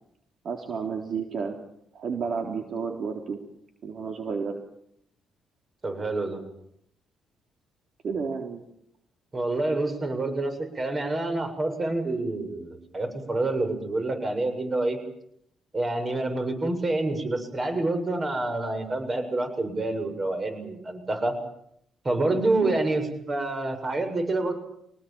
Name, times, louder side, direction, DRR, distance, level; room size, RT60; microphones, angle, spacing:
voice 1, 0.4-3.4 3.8-4.6 8.0-8.6 22.6-22.8, right 5 dB, 55° right, 4 dB, 3.7 m, -31 dB
voice 2, 5.8-6.4 9.3-15.0 15.7-21.3 22.0-24.5, right 2 dB, 30° right, 7 dB, 7.5 m, -27 dB
25.0 x 19.0 x 9.0 m, 0.73 s
cardioid pair, 90°, 0 cm